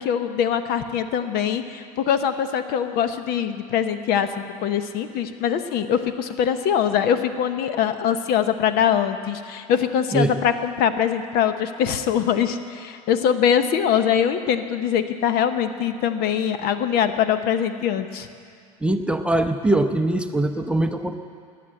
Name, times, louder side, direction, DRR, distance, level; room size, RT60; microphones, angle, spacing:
voice 1, 0.0-4.3 4.6-18.3, left 8 dB, 55° left, 10 dB, 1.0 m, -23 dB
voice 2, 18.8-21.2, right 1 dB, 5° right, 7 dB, 0.8 m, -22 dB
20.0 x 7.7 x 7.6 m, 2.2 s
hypercardioid pair, 85°, 19 cm